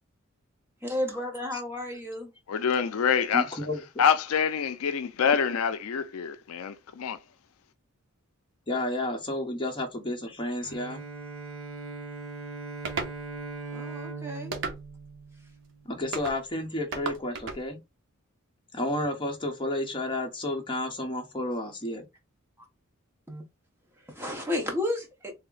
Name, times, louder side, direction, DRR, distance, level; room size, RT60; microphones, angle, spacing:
voice 1, 0.8-2.3 13.7-14.5 23.3-23.4 24.1-25.3, left 1 dB, 10° right, 1.0 m, -32 dB
voice 2, 2.5-3.6 4.0-7.2, left 7 dB, 80° left, 0.4 m, -26 dB
voice 3, 3.3-3.8 8.7-11.0 15.9-17.8 18.7-22.1, left 1 dB, 25° left, 0.9 m, -31 dB
Bowed string instrument, 10.6-16.0, right 4 dB, 80° right, 1.3 m, -40 dB
sound 1, 12.8-13.2 14.5-15.1 16.1-16.4 16.9-17.6, right 4 dB, 60° right, 0.7 m, -34 dB
3.4 x 2.1 x 3.8 m
head